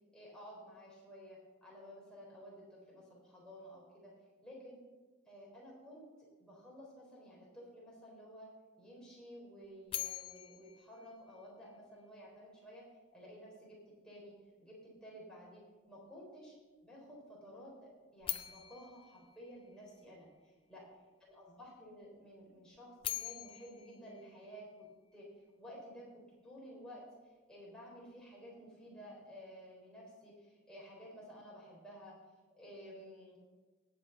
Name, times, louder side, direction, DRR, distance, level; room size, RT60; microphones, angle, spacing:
voice 1, 0.1-4.1 4.4-4.8 5.3-8.5 8.8-12.8 13.1-13.8 14.0-14.3 14.6-16.5 16.8-20.8 21.3-24.9 25.1-25.3 25.6-27.0 27.5-32.2 32.5-33.4, equal, 5° left, -5 dB, 3.8 m, -53 dB
sound 1, 9.9-12.0 18.2-20.4 22.7-25.2, left 12 dB, 30° left, 0.5 m, -44 dB
19.0 x 8.2 x 3.9 m, 1.3 s
head